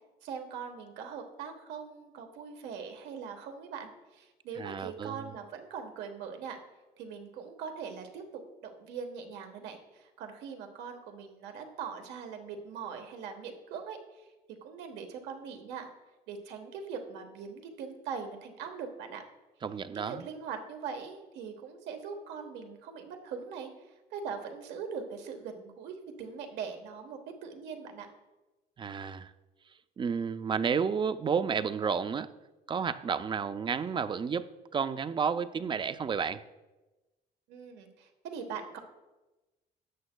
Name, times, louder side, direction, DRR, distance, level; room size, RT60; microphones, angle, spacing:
voice 1, 0.2-6.6 7.0-8.2 8.6-14.3 14.6-15.9 16.3-19.2 19.9-28.1 37.5-38.8, right 6 dB, 90° right, 5 dB, 1.2 m, -41 dB
voice 2, 4.6-5.2 19.6-20.2 28.8-29.3 30.0-32.3 32.7-36.4, right 6 dB, 30° right, 13 dB, 0.4 m, -31 dB
13.0 x 8.7 x 2.2 m, 1.1 s
cardioid pair, 110°, 17 cm